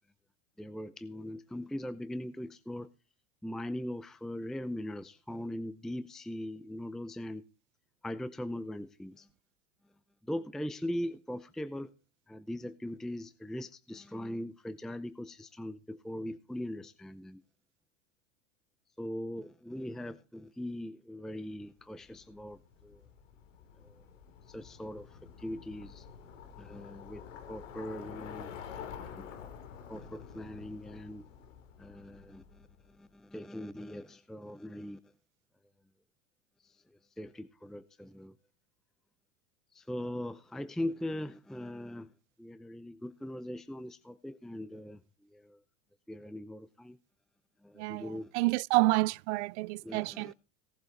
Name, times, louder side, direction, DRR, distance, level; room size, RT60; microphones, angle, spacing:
voice 1, 0.6-2.9 3.4-7.4 8.0-9.3 10.2-11.9 12.3-17.4 19.0-23.0 23.8-24.0 24.5-26.1 26.6-27.2 27.5-28.5 29.2-29.3 29.9-31.3 31.8-35.0 36.6-36.7 37.2-38.3 39.7-42.1 42.4-45.0 45.3-45.6 46.1-47.0 47.6-48.3 49.8-50.3, left 1 dB, ahead, 0.6 m, -40 dB
Bicycle, 22.0-32.9, left 8 dB, 90° left, 2.7 m, -48 dB
voice 2, 47.8-50.3, right 22 dB, 65° right, 0.5 m, -29 dB
18.0 x 7.7 x 4.0 m
supercardioid pair, 120°, 37 cm